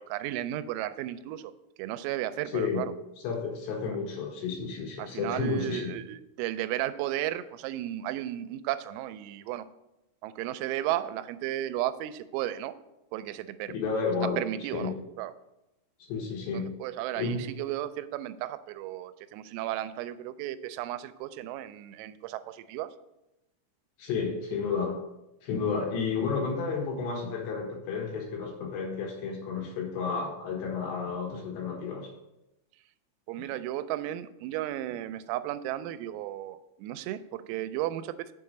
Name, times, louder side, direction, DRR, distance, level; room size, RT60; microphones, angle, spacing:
voice 1, 0.0-1.5 1.8-2.9 5.0-9.7 10.2-12.7 13.1-13.7 14.4-15.3 16.5-22.9 33.3-38.3, right 13 dB, 90° right, 12 dB, 3.2 m, -34 dB
voice 2, 3.2-6.0 13.7-14.4 14.7-14.9 16.1-16.7 17.2-17.4 24.0-24.9 25.4-32.1, left 5 dB, 70° left, -1 dB, 3.2 m, -31 dB
7.3 x 4.7 x 6.6 m, 0.92 s
omnidirectional pair, 5.9 m